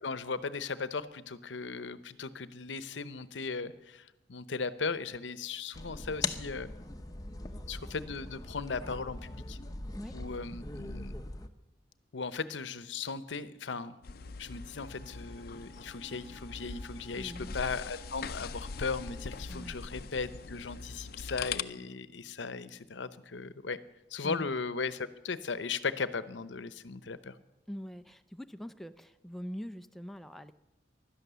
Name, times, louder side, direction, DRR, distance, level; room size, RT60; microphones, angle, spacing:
voice 1, 0.0-6.7 7.7-9.6 10.1-11.1 12.1-14.0 14.4-23.8 24.1-27.4, left 4 dB, 90° left, 14 dB, 0.8 m, -37 dB
sound 1, 5.7-11.5, left 3 dB, 20° left, 0.8 m, -40 dB
sound 2, 14.0-21.6, left 5 dB, 55° left, 0.5 m, -42 dB
Wind instrument woodwind instrument, 14.8-19.6, right 3 dB, 25° right, 4.3 m, -59 dB
voice 2, 17.1-17.6 19.5-19.8 24.2-24.5 27.7-30.5, equal, ahead, 10 dB, 0.4 m, -43 dB
16.5 x 12.0 x 6.9 m, 0.98 s
head